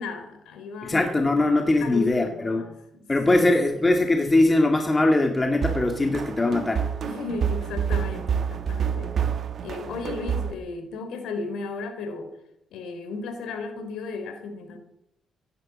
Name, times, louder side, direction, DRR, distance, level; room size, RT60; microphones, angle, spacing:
voice 1, 0.0-1.1 1.8-3.5 7.0-9.1 9.6-12.3 12.7-14.8, left 4 dB, 80° left, 8 dB, 3.5 m, -35 dB
voice 2, 0.8-2.6 3.1-6.9, left 2 dB, 20° left, 4 dB, 2.0 m, -21 dB
sound 1, 5.6-10.5, right 7 dB, 55° right, 1.5 m, -28 dB
16.0 x 11.0 x 7.4 m, 0.80 s
cardioid pair, 90°, 0 cm